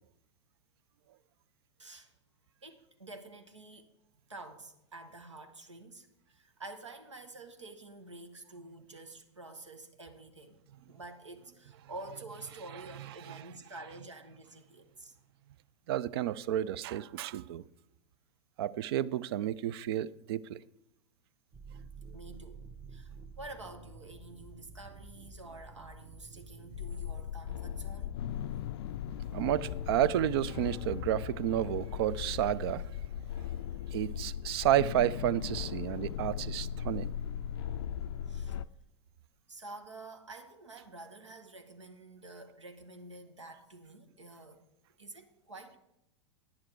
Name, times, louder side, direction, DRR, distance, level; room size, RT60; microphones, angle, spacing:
voice 1, 1.8-2.1 2.6-3.9 4.3-10.6 10.9-15.1 22.1-22.6 22.9-28.1 38.3-38.6 39.5-44.6 45.0-45.8, right 2 dB, 85° right, 1.2 m, -49 dB
voice 2, 15.9-17.6 18.6-20.6 29.3-32.9 33.9-37.1, right 12 dB, 55° right, 0.5 m, -31 dB
sound 1, 21.5-30.3, right 3 dB, 30° right, 1.4 m, -51 dB
sound 2, 26.7-38.6, left 10 dB, 60° left, 0.4 m, -38 dB
10.5 x 9.4 x 4.6 m
figure-of-eight pair, 95°, 15 cm